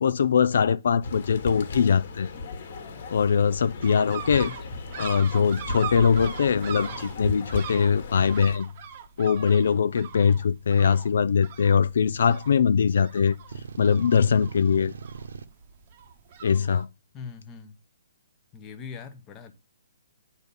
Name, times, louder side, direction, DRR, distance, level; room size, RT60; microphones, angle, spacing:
voice 1, 0.0-2.3 3.1-4.5 5.0-8.7 9.2-13.4 13.8-14.9 16.4-16.9, left 6 dB, 55° left, 0.4 m, -22 dB
sound 1, 1.0-8.6, left 3 dB, 35° left, 1.4 m, -36 dB
sound 2, 3.8-16.8, right 8 dB, 25° right, 1.0 m, -41 dB
voice 2, 4.4-4.8 17.1-17.8 18.5-19.5, left 6 dB, 10° left, 0.8 m, -41 dB
sound 3, 13.5-15.4, right 5 dB, 70° right, 1.3 m, -40 dB
9.6 x 4.1 x 7.0 m
hypercardioid pair, 180°, 0 cm